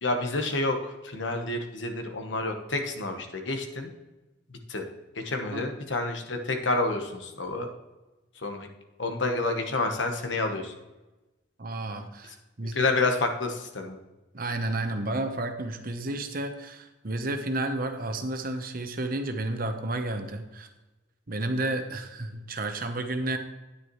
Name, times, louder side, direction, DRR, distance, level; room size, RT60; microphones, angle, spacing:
voice 1, 0.0-3.9 4.7-4.8 5.1-7.7 8.4-8.7 9.0-10.7 12.7-13.9, left 2 dB, 85° left, 4 dB, 1.3 m, -29 dB
voice 2, 11.6-12.8 14.3-20.7 21.3-23.4, right 2 dB, 50° right, 7 dB, 1.0 m, -31 dB
9.6 x 9.5 x 3.1 m, 1.1 s
head